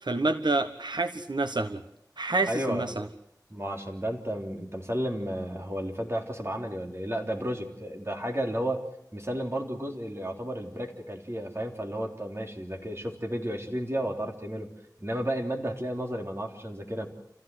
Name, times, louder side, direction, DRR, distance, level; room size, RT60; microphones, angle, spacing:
voice 1, 0.0-1.8 2.2-3.1, right 2 dB, 85° right, 7 dB, 1.1 m, -28 dB
voice 2, 2.5-2.8 3.5-8.9 9.1-14.7 15.0-17.1, equal, 35° right, 2 dB, 3.6 m, -32 dB
27.5 x 16.0 x 8.0 m, 0.78 s
wide cardioid pair, 40°, 7 cm